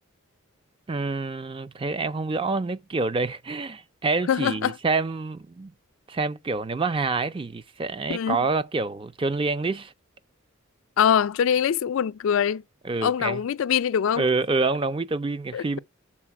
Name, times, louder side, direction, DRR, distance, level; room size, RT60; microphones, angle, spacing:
voice 1, 0.9-5.7 6.1-9.9 12.8-13.4 14.2-15.8, right 3 dB, 25° right, 0.4 m, -27 dB
voice 2, 4.3-4.8 8.1-8.4 11.0-12.6 13.0-14.2 15.5-15.8, left 8 dB, 65° left, 0.3 m, -23 dB
7.3 x 4.0 x 5.9 m
head